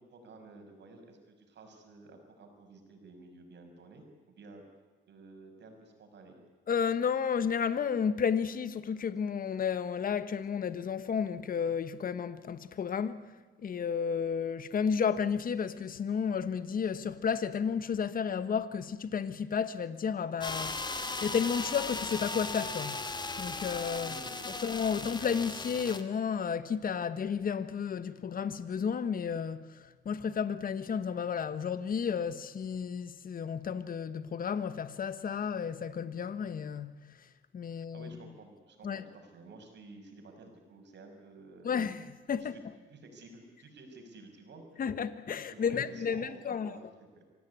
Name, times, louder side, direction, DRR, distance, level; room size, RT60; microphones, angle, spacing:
voice 1, 0.0-4.6 5.1-6.3 23.9-25.0 37.7-42.0 42.4-42.5 42.9-44.8 45.3-47.2, right 3 dB, 60° right, 6.5 m, -52 dB
voice 2, 6.7-13.2 13.6-20.8 21.2-23.0 23.4-24.2 24.6-37.0 37.5-38.1 38.8-39.0 41.6-42.6 44.8-46.8, left 7 dB, 45° left, 1.3 m, -32 dB
sound 1, 20.4-26.0, left 3 dB, 20° left, 2.1 m, -37 dB
25.0 x 17.0 x 9.8 m
cardioid pair, 90°, 20 cm